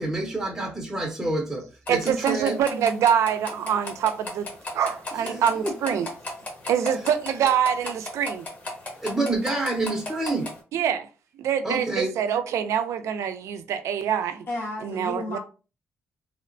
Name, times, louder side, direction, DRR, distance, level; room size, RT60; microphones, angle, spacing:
voice 1, 0.0-2.6 5.1-5.8 9.0-10.5 11.6-12.1, right 2 dB, 5° right, 0.6 m, -28 dB
sound 1, 1.9-10.6, left 1 dB, 35° left, 1.0 m, -37 dB
voice 2, 1.9-4.5 4.7-6.1 6.7-8.5 10.7-11.1 11.4-14.5 14.8-15.4, right 8 dB, 85° right, 0.4 m, -25 dB
voice 3, 14.5-15.4, left 2 dB, 55° left, 1.1 m, -32 dB
2.8 x 2.1 x 2.5 m
cardioid pair, 120°, 5 cm